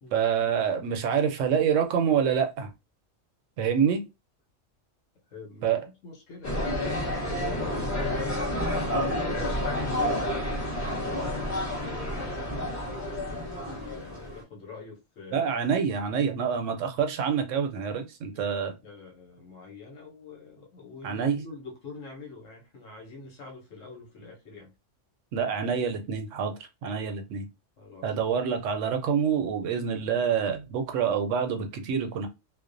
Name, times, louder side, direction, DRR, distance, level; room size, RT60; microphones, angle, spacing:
voice 1, 0.1-2.7 3.6-4.0 5.6-5.8 15.3-18.7 21.0-21.4 25.3-26.5 26.8-27.4 28.0-32.3, right 7 dB, 75° right, 0.9 m, -26 dB
voice 2, 5.3-6.8 7.3-15.5 18.3-24.7 27.8-28.1, left 4 dB, 85° left, 1.1 m, -45 dB
sound 1, 6.4-14.4, left 1 dB, 15° left, 0.8 m, -30 dB
2.4 x 2.1 x 2.5 m
omnidirectional pair, 1.3 m